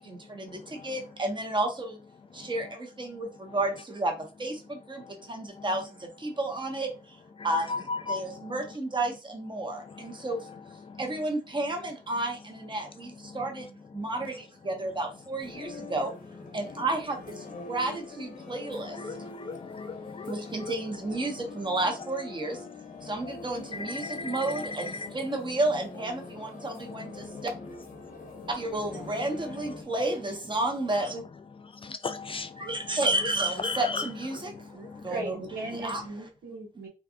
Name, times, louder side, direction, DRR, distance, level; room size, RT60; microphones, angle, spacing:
voice 1, 0.0-2.0 2.3-7.2 7.4-10.5 11.0-16.1 16.5-19.2 20.3-22.6 23.0-27.3 28.5-31.2 32.6-35.3 35.8-36.0, right 2 dB, 30° right, 1.1 m, -32 dB
voice 2, 7.5-8.5 10.9-11.0 18.8-20.3 20.6-20.7 23.8-24.7 25.0-25.1 27.2-27.4 31.8-32.7 33.6-34.1 34.3-34.4 34.8-34.9, left 4 dB, 35° left, 0.3 m, -36 dB
sound 1, 15.4-29.8, left 3 dB, 55° left, 1.0 m, -44 dB
voice 3, 34.7-36.9, right 2 dB, 75° right, 1.3 m, -38 dB
3.4 x 2.4 x 2.3 m
supercardioid pair, 55°, 16 cm